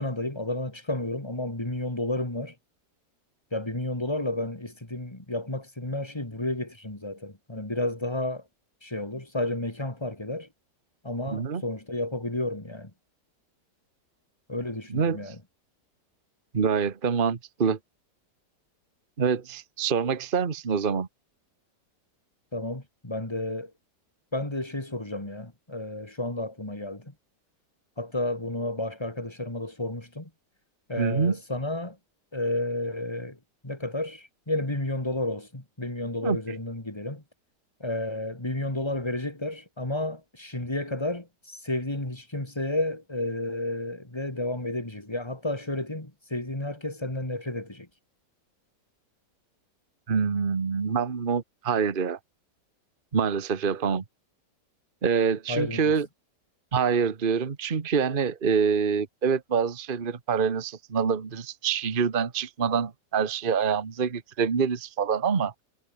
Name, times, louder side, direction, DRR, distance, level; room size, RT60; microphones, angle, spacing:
voice 1, 0.0-2.5 3.5-8.4 8.8-10.5 11.0-12.9 14.5-15.4 22.5-23.7 24.3-27.1 28.0-30.3 30.9-32.0 32.3-33.4 33.6-37.2 37.8-47.9 55.5-55.9, left 1 dB, 15° left, 3.0 m, -31 dB
voice 2, 11.3-11.6 14.9-15.3 16.5-17.8 19.2-21.1 31.0-31.4 36.2-36.4 50.1-52.2 53.1-54.0 55.0-56.1 56.7-65.6, right 6 dB, 35° right, 1.4 m, -26 dB
omnidirectional pair, 1.9 m